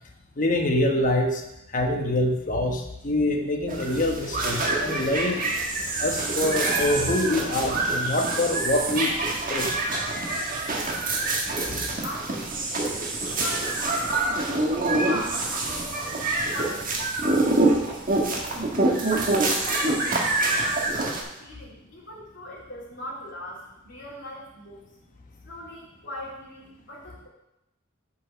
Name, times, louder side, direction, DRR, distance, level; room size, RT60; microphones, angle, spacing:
voice 1, 0.4-1.4 1.7-5.4 6.0-9.1 9.5-9.8, left 1 dB, 40° left, 3 dB, 1.2 m, -25 dB
sound 1, 3.7-21.2, right 2 dB, 45° right, 1.5 m, -26 dB
voice 2, 12.0-13.0 13.3-16.9 17.5-18.0 19.1-24.8 25.4-27.3, left 1 dB, 60° left, -5 dB, 3.2 m, -40 dB
8.1 x 5.5 x 6.3 m, 0.88 s
head